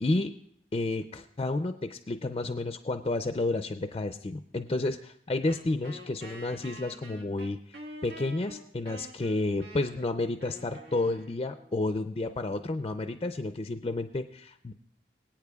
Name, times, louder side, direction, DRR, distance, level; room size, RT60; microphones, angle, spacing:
voice 1, 0.0-0.3 0.7-7.8 8.0-14.7, left 2 dB, 30° left, 8 dB, 0.4 m, -31 dB
Wind instrument woodwind instrument, 5.5-11.8, right 1 dB, 90° right, 1.7 m, -47 dB
24.5 x 8.8 x 2.3 m, 0.69 s
head